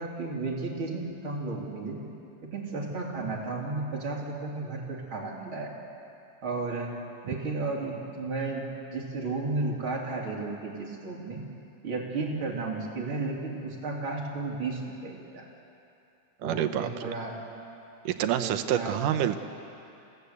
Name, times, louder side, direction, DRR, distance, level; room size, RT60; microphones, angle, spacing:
voice 1, 0.0-2.0 2.5-5.7 6.4-6.9 7.2-11.4 11.8-15.5 16.4-17.4 18.4-19.0, right 3 dB, 40° right, -2 dB, 3.6 m, -33 dB
voice 2, 16.4-17.1 18.1-19.4, right 10 dB, 85° right, 9 dB, 2.5 m, -27 dB
27.5 x 16.5 x 8.2 m, 2.7 s
omnidirectional pair, 3.6 m